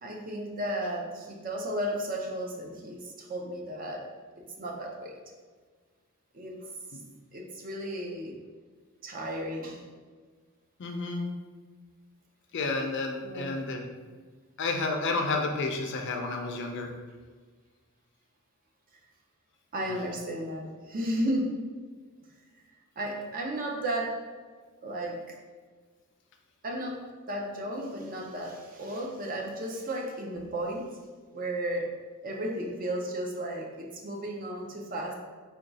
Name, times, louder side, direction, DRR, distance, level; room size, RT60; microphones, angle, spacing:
voice 1, 0.0-4.1 4.4-5.1 6.3-6.7 7.3-8.4 9.0-9.8 13.2-13.6 19.7-21.6 23.0-24.2 24.8-25.4 26.6-31.0 31.3-35.1, right 1 dB, 40° right, 0 dB, 0.6 m, -34 dB
voice 2, 10.8-11.3 12.5-13.8 14.6-16.9, left 3 dB, 55° left, 3 dB, 0.5 m, -30 dB
3.6 x 2.3 x 4.0 m, 1.5 s
head